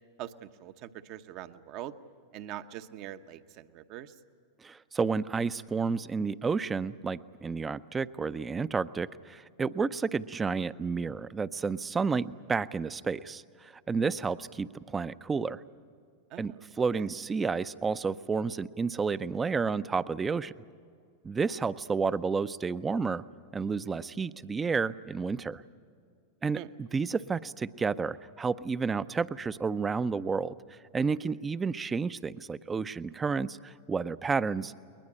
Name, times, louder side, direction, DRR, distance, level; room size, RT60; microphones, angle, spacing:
voice 1, 0.2-1.9 2.3-4.1 16.3-16.7 16.9-17.0 26.5-26.7, right 12 dB, 50° right, 10 dB, 0.9 m, -43 dB
voice 2, 4.6-15.6 16.4-20.5 21.2-23.2 23.5-25.6 26.4-34.9, right 5 dB, 20° right, 15 dB, 0.6 m, -31 dB
21.0 x 21.0 x 8.7 m, 2.2 s
hypercardioid pair, 100°, 0 cm